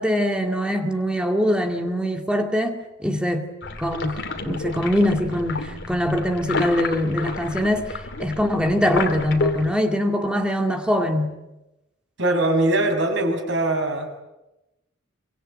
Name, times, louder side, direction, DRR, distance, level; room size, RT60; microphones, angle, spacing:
voice 1, 0.0-3.5 3.8-11.3, equal, 5° right, 2.1 m, -23 dB
sound 1, 3.6-9.7, left 3 dB, 65° left, 3.0 m, -30 dB
voice 2, 12.2-14.1, right 2 dB, 65° right, 6.4 m, -21 dB
26.0 x 24.5 x 9.1 m
head